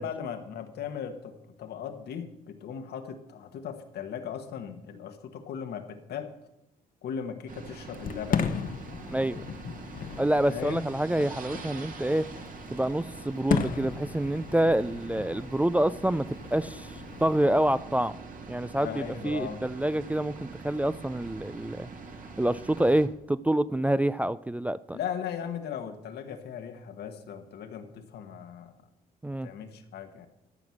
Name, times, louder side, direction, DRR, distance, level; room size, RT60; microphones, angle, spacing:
voice 1, 0.0-6.3 7.0-8.4 10.5-10.8 18.8-19.6 24.9-28.7 29.4-30.3, left 8 dB, 80° left, 7 dB, 1.4 m, -38 dB
sound 1, 7.5-23.1, right 4 dB, 55° right, 1.9 m, -44 dB
Fireworks, 7.9-17.8, left 6 dB, 55° left, 1.0 m, -36 dB
voice 2, 10.2-12.3 12.7-16.9 17.2-18.2 18.5-21.9 22.4-25.0 29.2-29.5, right 1 dB, 10° right, 16 dB, 0.3 m, -27 dB
13.5 x 6.2 x 7.2 m, 0.88 s
cardioid pair, 95°, 17 cm